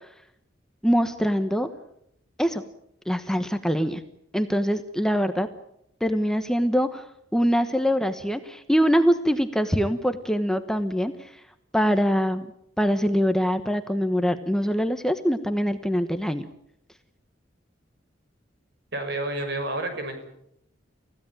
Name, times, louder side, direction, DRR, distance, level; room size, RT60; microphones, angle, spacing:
voice 1, 0.8-1.7 2.4-2.6 3.1-4.0 4.3-5.5 6.0-7.0 7.3-11.3 11.7-12.5 12.8-16.5, equal, 5° left, 8 dB, 1.2 m, -23 dB
voice 2, 18.9-20.3, right 2 dB, 60° right, 7 dB, 6.5 m, -30 dB
29.5 x 16.0 x 9.0 m, 0.76 s
head